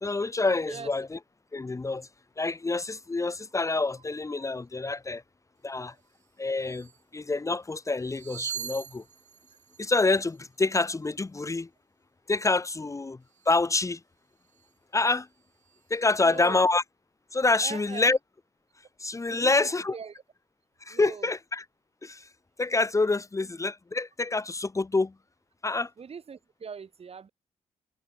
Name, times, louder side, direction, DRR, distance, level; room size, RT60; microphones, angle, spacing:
voice 1, 0.0-1.2 1.5-2.1 2.4-5.2 5.6-5.9 6.4-9.0 9.8-11.7 12.3-13.2 13.5-14.0 14.9-15.3 15.9-16.8 17.3-18.2 19.0-19.9 20.8-21.6 22.0-22.3 22.6-25.1 25.6-25.9, left 3 dB, 25° left, 1.9 m, -27 dB
sound 1, 6.1-6.3 6.6-7.0 7.9-11.0 13.3-13.6 14.4-14.7 15.1-16.6, right 8 dB, 65° right, 5.0 m, -43 dB
voice 2, 16.2-16.7 17.6-18.2 19.3-20.2 20.9-21.3 26.0-27.3, right 6 dB, 45° right, 6.6 m, -42 dB
cardioid pair, 100°, 14 cm